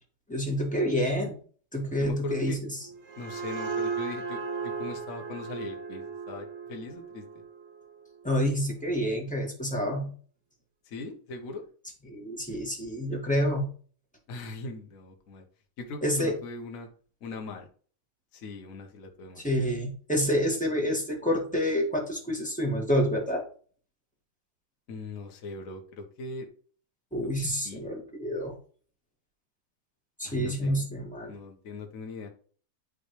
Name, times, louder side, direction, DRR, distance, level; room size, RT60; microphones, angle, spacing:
voice 1, 0.3-1.4 1.7-2.8 8.2-10.1 12.1-13.7 16.0-16.3 19.4-23.4 27.1-28.5 30.2-31.3, equal, 5° left, -1 dB, 1.7 m, -28 dB
voice 2, 2.0-2.6 3.2-7.2 10.9-11.6 14.3-15.4 15.8-16.9 17.2-17.7 18.3-19.5 24.9-26.5 27.6-27.9 30.2-30.8 31.3-32.3, left 3 dB, 45° left, 3 dB, 1.5 m, -40 dB
sound 1, 2.8-8.3, right 5 dB, 55° right, 1.2 m, -36 dB
10.0 x 3.9 x 3.3 m, 0.43 s
omnidirectional pair, 2.3 m